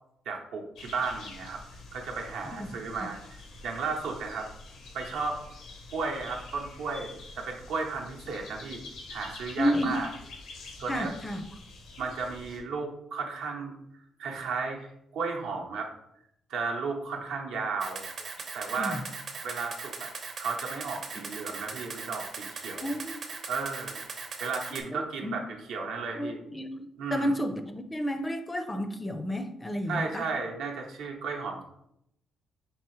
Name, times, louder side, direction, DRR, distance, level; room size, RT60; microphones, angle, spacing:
voice 1, 0.3-1.6 1.9-3.2 3.6-4.5 4.9-5.4 5.9-7.1 7.4-8.8 9.1-10.1 10.8-11.2 12.0-13.7 14.2-14.9 15.1-15.9 16.5-18.1 18.5-19.0 19.4-20.1 20.4-22.9 23.5-24.1 24.4-26.4 27.0-27.3 29.9-31.6, right 4 dB, 85° right, 1 dB, 0.7 m, -34 dB
sound 1, 0.8-12.6, left 3 dB, 80° left, 0.8 m, -47 dB
voice 2, 9.6-10.0 10.9-11.4 18.8-19.0 22.8-23.2 24.7-25.4 26.2-30.3, equal, 20° left, 8 dB, 0.4 m, -31 dB
Camera, 17.8-24.8, right 4 dB, 50° right, 0.6 m, -39 dB
4.7 x 2.8 x 3.0 m, 0.78 s
cardioid pair, 90°, 0 cm